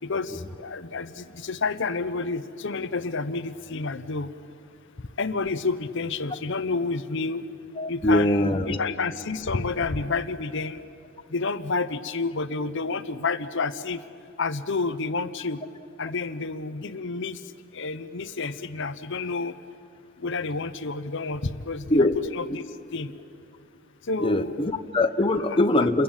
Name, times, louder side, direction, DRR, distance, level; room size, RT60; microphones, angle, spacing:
voice 1, 0.0-4.3 5.2-7.4 7.9-10.8 11.3-14.0 14.4-15.6 16.0-17.4 17.7-19.5 20.2-22.1 22.3-22.6 22.9-23.1 24.1-24.7 25.5-25.6, left 4 dB, 60° left, 12 dB, 0.8 m, -29 dB
voice 2, 7.8-8.8 21.9-22.2 24.2-26.0, left 1 dB, 25° left, 7 dB, 0.9 m, -22 dB
29.5 x 22.5 x 8.9 m, 2.5 s
head